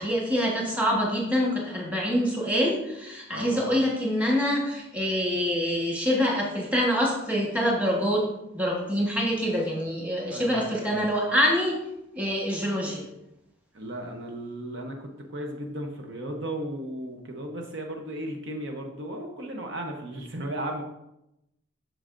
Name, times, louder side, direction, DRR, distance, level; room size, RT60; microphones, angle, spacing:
voice 1, 0.0-8.2 8.5-11.8 12.1-13.0, equal, 5° right, -2 dB, 1.3 m, -25 dB
voice 2, 3.3-3.7 10.3-11.0 13.7-20.8, right 1 dB, 60° right, 3 dB, 0.8 m, -35 dB
7.8 x 6.3 x 2.6 m, 0.86 s
head